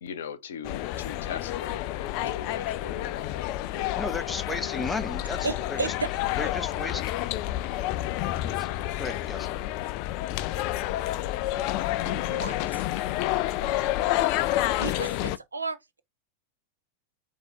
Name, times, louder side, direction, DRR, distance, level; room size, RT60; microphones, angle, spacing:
voice 1, 0.0-4.1, left 7 dB, 60° left, 0.7 m, -39 dB
sound 1, 0.6-15.4, left 14 dB, 45° left, 0.3 m, -29 dB
voice 2, 4.0-5.9 6.4-7.0 8.4-8.7 9.0-9.5, left 3 dB, 10° left, 0.8 m, -34 dB
voice 3, 5.4-6.1 12.0-12.8 14.8-16.0, right 4 dB, 80° right, 0.6 m, -33 dB
4.7 x 2.7 x 3.9 m
figure-of-eight pair, 90°, 0 cm